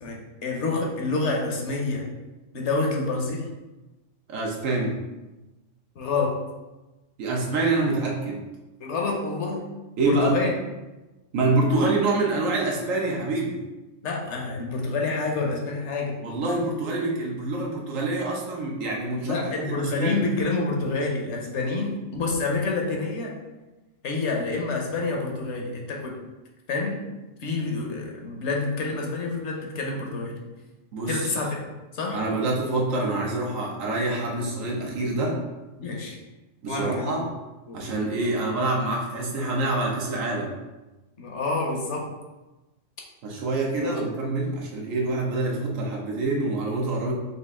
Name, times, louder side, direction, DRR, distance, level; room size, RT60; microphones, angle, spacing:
voice 1, 0.0-2.0 2.5-3.5 6.0-6.4 8.8-9.7 10.0-10.5 14.0-16.2 19.2-23.3 24.0-26.2 26.7-27.0 27.4-30.4 31.1-31.6 31.9-32.2 35.8-36.2 36.7-37.2 37.7-37.9 41.2-42.1 43.8-43.9, left 3 dB, 65° left, 0 dB, 1.1 m, -28 dB
voice 2, 4.3-5.0 7.2-8.4 10.0-10.4 11.3-13.6 16.2-19.5 20.0-20.2 30.9-31.3 32.1-35.4 36.6-37.3 37.7-40.5 43.2-47.1, right 2 dB, 85° right, -2 dB, 1.1 m, -26 dB
5.2 x 2.4 x 3.5 m, 1.1 s
omnidirectional pair, 1.3 m